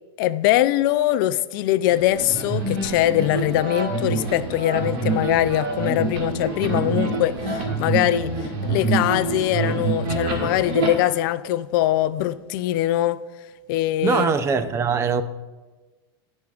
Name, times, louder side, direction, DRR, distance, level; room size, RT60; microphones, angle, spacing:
voice 1, 0.2-13.2 13.7-14.3, left 14 dB, 55° left, 0.4 m, -22 dB
sound 1, 1.9-10.9, right 3 dB, 60° right, 2.0 m, -26 dB
voice 2, 14.0-15.2, right 5 dB, 20° right, 0.4 m, -21 dB
18.0 x 6.2 x 2.4 m
supercardioid pair, 140°, 13 cm